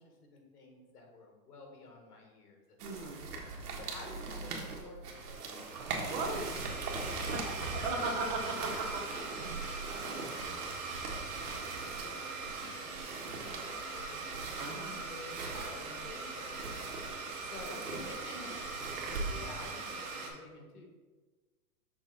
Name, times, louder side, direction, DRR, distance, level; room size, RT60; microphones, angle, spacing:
voice 1, 0.0-3.3 3.5-5.7 7.0-8.1 8.6-17.1 17.4-20.8, left 3 dB, 85° left, 1 dB, 1.7 m, -51 dB
voice 2, 2.8-3.3 6.1-6.4 7.8-8.7 14.6-14.9 18.3-18.6, right 3 dB, 30° right, 0 dB, 0.9 m, -36 dB
sound 1, 2.8-19.7, right 3 dB, 80° right, 1.5 m, -42 dB
Domestic sounds home sounds, 5.0-20.3, right 4 dB, 65° right, 1.3 m, -41 dB
6.1 x 4.0 x 4.0 m, 1.3 s
hypercardioid pair, 170°, 46 cm